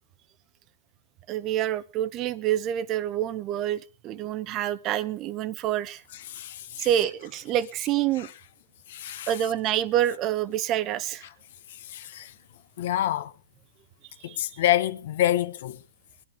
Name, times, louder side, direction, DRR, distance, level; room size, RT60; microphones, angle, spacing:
voice 1, 1.3-6.0 6.8-8.3 9.3-11.2 14.3-14.4, right 11 dB, 30° right, 0.8 m, -27 dB
voice 2, 6.3-6.9 8.9-9.3 11.9-12.3 12.8-13.3 14.2-15.8, left 13 dB, 60° left, 1.1 m, -27 dB
21.0 x 11.5 x 3.7 m
hypercardioid pair, 150°, 0 cm